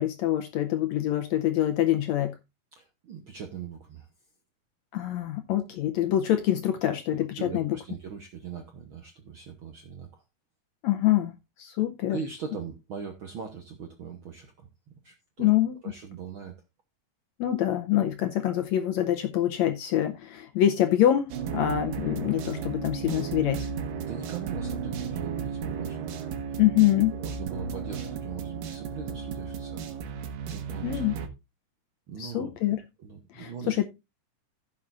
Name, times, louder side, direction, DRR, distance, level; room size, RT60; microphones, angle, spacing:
voice 1, 0.0-2.3 4.9-7.8 10.8-12.2 15.4-15.7 17.4-23.7 26.6-27.1 30.8-31.2 32.2-32.8 33.3-33.8, left 12 dB, 75° left, 1.7 m, -25 dB
voice 2, 2.7-4.1 6.8-6.9 7.4-10.2 12.1-14.7 15.0-15.5 15.8-16.5 23.9-26.1 27.1-30.0 30.5-31.0 32.1-33.8, right 7 dB, 65° right, 1.3 m, -40 dB
sound 1, 21.3-31.3, right 6 dB, 90° right, 2.9 m, -34 dB
15.5 x 6.8 x 2.5 m
omnidirectional pair, 3.8 m